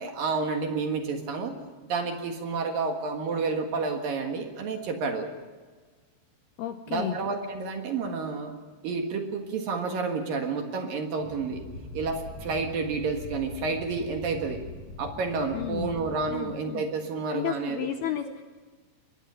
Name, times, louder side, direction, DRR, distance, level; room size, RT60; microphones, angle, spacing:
voice 1, 0.0-1.5 1.8-5.3 6.9-8.5 8.8-11.6 11.9-14.6 15.0-17.9, right 4 dB, 60° right, 4 dB, 2.9 m, -30 dB
voice 2, 6.6-7.1 15.5-15.9 16.3-16.8 17.3-18.4, left 11 dB, 80° left, 8 dB, 2.3 m, -32 dB
sound 1, 11.2-16.4, left 2 dB, 30° left, 7.1 m, -42 dB
23.5 x 21.0 x 5.7 m, 1.4 s
omnidirectional pair, 5.4 m